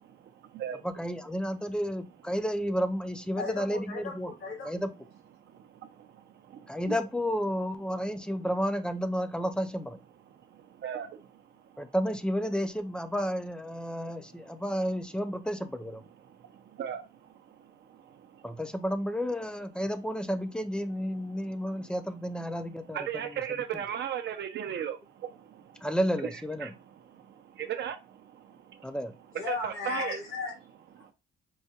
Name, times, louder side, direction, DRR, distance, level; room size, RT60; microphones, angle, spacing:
voice 1, 0.8-4.3 4.7-4.9 6.7-10.0 11.8-16.0 18.4-23.0 25.8-26.7 28.8-29.1, equal, 5° left, 0.3 m, -31 dB
voice 2, 3.4-4.8 29.3-30.5, left 4 dB, 80° left, 2.1 m, -36 dB
voice 3, 22.9-25.0 26.2-26.3 26.6-26.7 27.6-28.0 29.4-30.2, right 9 dB, 60° right, 0.5 m, -34 dB
4.7 x 2.2 x 2.8 m
cardioid pair, 130°, 21 cm